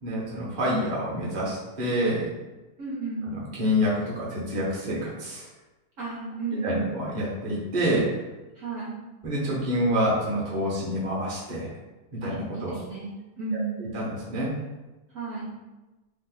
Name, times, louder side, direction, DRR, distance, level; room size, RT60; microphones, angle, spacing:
voice 1, 0.0-2.3 3.3-5.5 6.6-8.2 9.2-11.7 12.1-12.8 13.5-14.5, equal, 35° right, -6 dB, 0.8 m, -27 dB
voice 2, 2.8-3.3 6.0-7.0 8.6-9.0 12.2-13.9 15.1-15.5, right 4 dB, 60° right, -7 dB, 1.0 m, -33 dB
2.9 x 2.4 x 3.8 m, 1.1 s
omnidirectional pair, 1.8 m